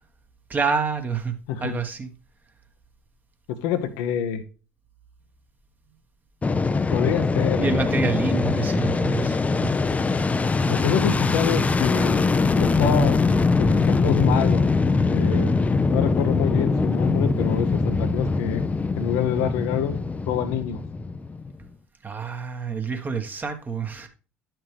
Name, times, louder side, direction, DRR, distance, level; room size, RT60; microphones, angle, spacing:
voice 1, 0.5-1.3 1.6-2.1 7.6-9.7 22.0-24.1, right 5 dB, 25° right, 1.3 m, -27 dB
voice 2, 1.5-1.8 3.5-4.4 6.9-7.8 10.7-12.3 12.5-13.2 13.6-14.6 15.1-15.5 15.9-18.6 19.0-20.0 20.3-20.8, left 9 dB, 60° left, 0.8 m, -26 dB
Fixed-wing aircraft airplane, 6.4-21.6, left 4 dB, 20° left, 0.6 m, -22 dB
10.5 x 6.0 x 3.3 m
figure-of-eight pair, 60°, 7 cm